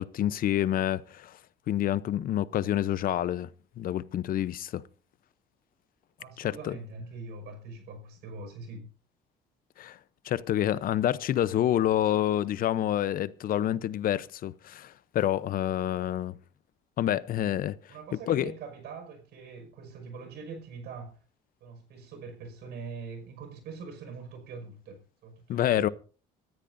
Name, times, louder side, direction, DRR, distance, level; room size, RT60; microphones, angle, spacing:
voice 1, 0.0-1.4 1.7-3.5 3.8-4.8 6.4-6.8 9.8-10.0 10.2-16.3 17.0-17.8 18.3-18.5 25.5-25.9, left 12 dB, 55° left, 0.8 m, -28 dB
voice 2, 6.2-8.9 17.9-21.2 21.6-25.9, right 4 dB, 80° right, 5.6 m, -43 dB
25.5 x 14.0 x 2.7 m
cardioid pair, 110°, 17 cm